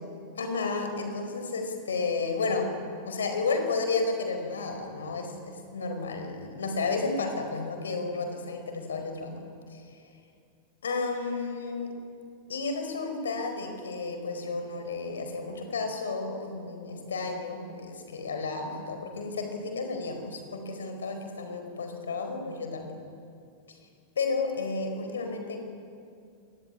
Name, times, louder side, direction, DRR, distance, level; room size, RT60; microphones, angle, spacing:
voice 1, 0.3-2.7 3.0-9.4 9.7-10.0 10.8-12.0 12.5-22.9 23.7-23.8 24.1-25.6, left 4 dB, 70° left, 6 dB, 4.9 m, -32 dB
27.0 x 19.5 x 9.8 m, 2.4 s
figure-of-eight pair, 90°, 0 cm